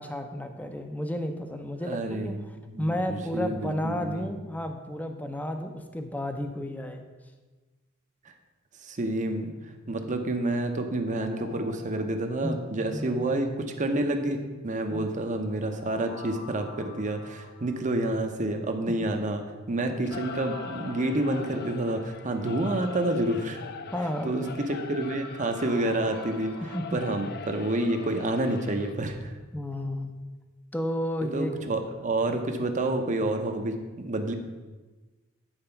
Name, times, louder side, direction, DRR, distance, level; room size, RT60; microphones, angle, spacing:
voice 1, 0.0-2.3 2.8-7.1 12.4-12.6 12.9-13.2 14.9-15.1 23.9-24.6 26.6-27.0 29.5-30.1 30.7-31.5, left 1 dB, 10° left, 5 dB, 0.6 m, -32 dB
voice 2, 1.8-2.4 2.7-4.2 8.8-9.5 9.9-14.4 14.6-23.6 24.2-24.4 24.7-26.5 26.9-29.3 31.2-34.3, right 1 dB, 35° right, 5 dB, 0.8 m, -29 dB
sound 1, 11.1-13.4 15.7-18.6 20.1-22.8 24.9-29.4 29.7-29.8, left 2 dB, 80° left, 2.1 m, -48 dB
Singing / Musical instrument, 20.0-28.9, left 6 dB, 50° left, 0.4 m, -41 dB
8.9 x 4.3 x 5.7 m, 1.2 s
head